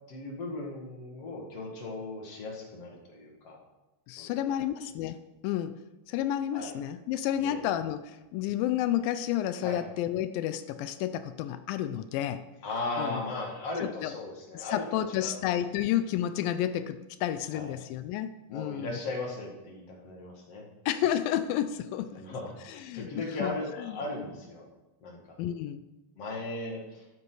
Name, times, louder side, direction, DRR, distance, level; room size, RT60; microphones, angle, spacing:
voice 1, 0.1-3.6 4.2-4.7 6.5-6.8 7.4-7.6 9.6-9.8 12.6-15.4 17.5-17.7 18.5-20.6 22.1-24.7 25.0-25.4 26.2-27.1, left 2 dB, 50° left, 0 dB, 2.7 m, -37 dB
voice 2, 4.1-5.8 6.1-12.4 13.0-13.2 13.8-14.1 14.5-19.0 20.9-22.2 22.7-23.1 23.4-23.9 25.4-25.8, left 11 dB, 85° left, 11 dB, 2.3 m, -31 dB
13.0 x 13.0 x 4.0 m, 1.0 s
omnidirectional pair, 4.0 m